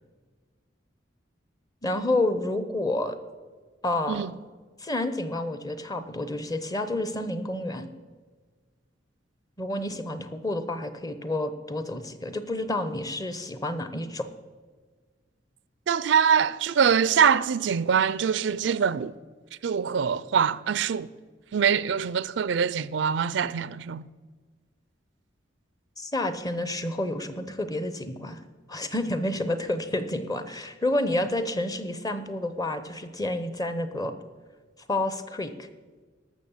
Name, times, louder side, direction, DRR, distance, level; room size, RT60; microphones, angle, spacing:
voice 1, 1.8-3.2 3.8-4.3 4.8-7.9 9.6-14.3 26.0-28.4 28.7-34.1 34.9-35.7, left 1 dB, 20° left, 0.8 m, -29 dB
voice 2, 15.9-19.1 19.6-21.1 21.5-24.1, right 7 dB, 70° right, 0.4 m, -24 dB
12.5 x 6.7 x 7.2 m
head